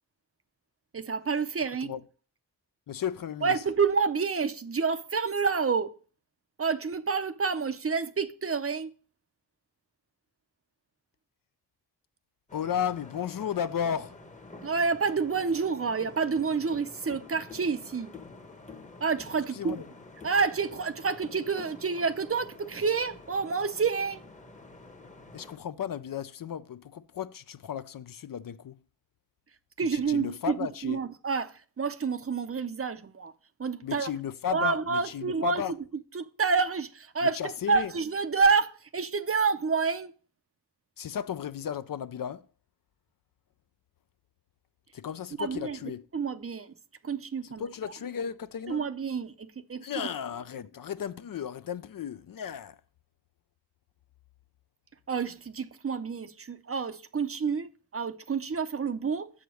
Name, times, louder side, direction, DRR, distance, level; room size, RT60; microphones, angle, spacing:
voice 1, 0.9-1.9 3.4-5.9 6.6-8.9 14.6-18.1 19.0-19.8 20.2-24.2 29.8-33.3 33.6-34.1 34.5-35.6 36.1-37.4 37.7-40.1 45.4-45.8 46.1-46.7 47.0-47.9 48.7-49.9 55.1-59.3, right 5 dB, 35° right, 0.6 m, -28 dB
voice 2, 2.9-3.6 12.5-14.2 19.5-19.8 25.3-28.8 29.9-31.0 33.8-35.7 37.4-37.9 41.0-42.5 44.9-46.0 47.6-48.8 49.8-52.8, left 8 dB, 55° left, 0.5 m, -34 dB
sound 1, 12.5-25.6, left 3 dB, 20° left, 1.0 m, -48 dB
6.9 x 5.0 x 6.2 m
cardioid pair, 65°, 41 cm